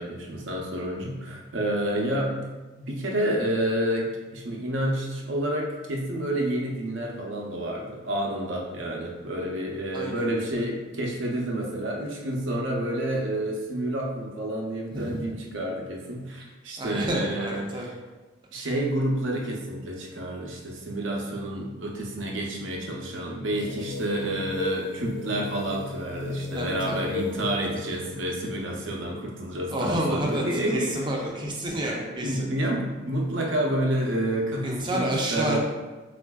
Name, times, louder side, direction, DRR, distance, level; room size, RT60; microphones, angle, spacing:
voice 1, 0.0-2.3 2.8-17.9 18.5-31.0 31.8-31.9 32.2-35.6, right 1 dB, 70° right, 0 dB, 0.6 m, -29 dB
voice 2, 9.9-10.2 14.9-15.3 16.8-17.9 26.5-27.1 29.7-30.4 30.7-32.5 34.6-35.6, right 1 dB, 25° right, -1 dB, 0.5 m, -29 dB
sound 1, 23.5-29.9, left 3 dB, 60° left, 0.4 m, -36 dB
4.2 x 2.5 x 2.2 m, 1.2 s
head